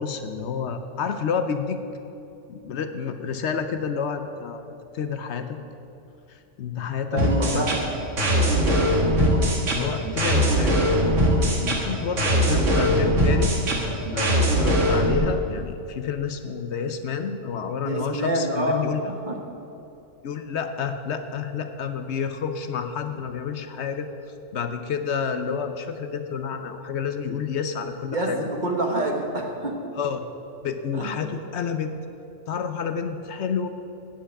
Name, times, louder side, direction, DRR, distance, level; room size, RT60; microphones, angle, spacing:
voice 1, 0.0-1.8 2.5-4.6 4.9-5.6 6.3-7.2 7.5-7.7 8.1-8.4 9.2-9.3 9.8-10.8 11.4-13.5 14.1-19.1 20.2-24.1 24.5-28.5 30.0-30.2 30.6-31.9 32.5-33.7, left 6 dB, 65° left, 8 dB, 0.9 m, -29 dB
voice 2, 7.1-7.9 17.8-19.4 28.1-29.9 30.9-31.2, right 1 dB, 40° right, 1 dB, 1.4 m, -27 dB
sound 1, 7.2-15.2, equal, 80° right, 2.0 m, -21 dB
8.9 x 7.5 x 8.7 m, 2.8 s
omnidirectional pair, 1.3 m